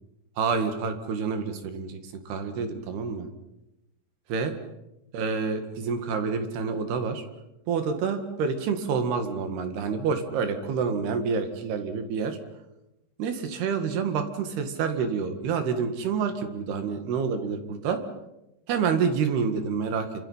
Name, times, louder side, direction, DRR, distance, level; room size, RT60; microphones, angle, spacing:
voice 1, 0.4-2.0 2.3-3.3 4.3-4.5 5.1-7.2 7.7-12.4 13.2-18.0 18.7-20.1, right 5 dB, 75° right, 7 dB, 4.0 m, -28 dB
27.5 x 25.5 x 5.7 m, 0.93 s
omnidirectional pair, 4.7 m